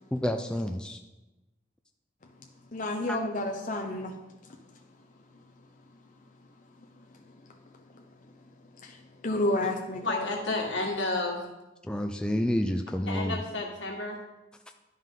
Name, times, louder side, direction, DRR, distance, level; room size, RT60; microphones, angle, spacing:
voice 1, 0.1-1.0 3.1-3.2 11.8-13.4, left 1 dB, 5° left, 5 dB, 0.3 m, -29 dB
voice 2, 2.7-4.1 9.2-10.2, left 1 dB, 40° left, 2 dB, 0.7 m, -29 dB
voice 3, 10.0-11.5 13.1-14.2, left 2 dB, 80° left, -1 dB, 1.8 m, -31 dB
11.0 x 5.4 x 3.7 m, 1.1 s
head